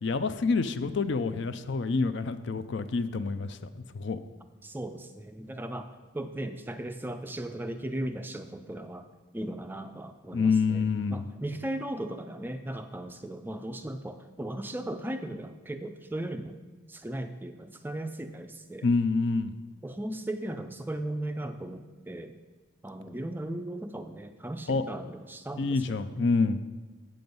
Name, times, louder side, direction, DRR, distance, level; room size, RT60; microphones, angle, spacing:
voice 1, 0.0-4.2 10.3-11.3 18.8-19.6 24.7-24.8 25.6-26.6, left 4 dB, 60° left, 12 dB, 0.4 m, -27 dB
voice 2, 4.6-5.9 6.1-9.1 9.3-16.6 16.9-18.9 19.8-22.4 22.8-26.3, right 1 dB, 10° right, 8 dB, 0.3 m, -37 dB
7.7 x 7.7 x 5.3 m, 1.3 s
head